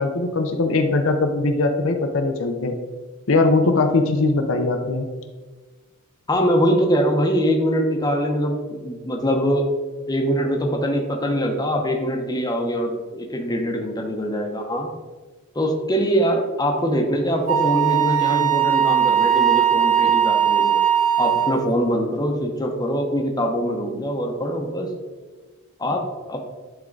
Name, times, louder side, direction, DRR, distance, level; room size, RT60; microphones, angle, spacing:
voice 1, 0.0-2.7 3.3-5.1 20.0-20.1, left 3 dB, 65° left, 5 dB, 0.7 m, -20 dB
voice 2, 6.3-9.7 10.1-14.9 15.5-20.8 21.2-24.9 25.8-26.4, equal, 20° left, 2 dB, 0.8 m, -23 dB
Wind instrument woodwind instrument, 17.5-21.7, right 9 dB, 35° right, 0.7 m, -19 dB
10.5 x 3.6 x 3.9 m, 1.3 s
head